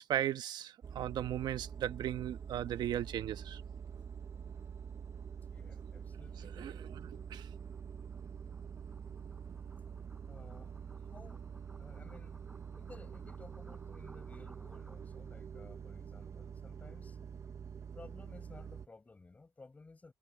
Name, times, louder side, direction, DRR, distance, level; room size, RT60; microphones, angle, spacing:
voice 1, 0.0-3.6 6.4-7.5, right 11 dB, 65° right, 1.2 m, -37 dB
sound 1, 0.8-18.9, right 7 dB, 40° right, 0.9 m, -46 dB
sound 2, 5.4-15.3, right 2 dB, 10° right, 7.3 m, -63 dB
voice 2, 5.5-6.8 10.3-11.4 11.8-12.4 12.8-17.3 17.9-20.1, left 3 dB, 20° left, 6.9 m, -56 dB
cardioid pair, 130°, 8 cm